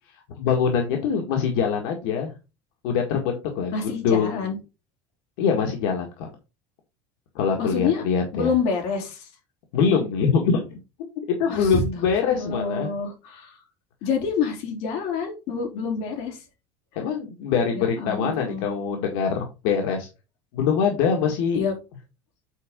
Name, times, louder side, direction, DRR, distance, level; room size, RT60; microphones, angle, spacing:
voice 1, 0.4-2.3 2.8-3.7 4.0-4.5 5.4-6.3 7.4-8.5 9.7-10.8 11.3-12.9 17.0-20.1 20.5-21.6, left 6 dB, 85° left, 2 dB, 1.8 m, -23 dB
voice 2, 3.7-4.6 7.6-8.0 8.3-9.3 11.5-11.8 12.3-13.6 14.0-16.4 17.7-19.0 21.5-21.7, left 5 dB, 60° left, 2 dB, 3.4 m, -27 dB
8.3 x 4.9 x 3.7 m, 0.28 s
cardioid pair, 165°, 12 cm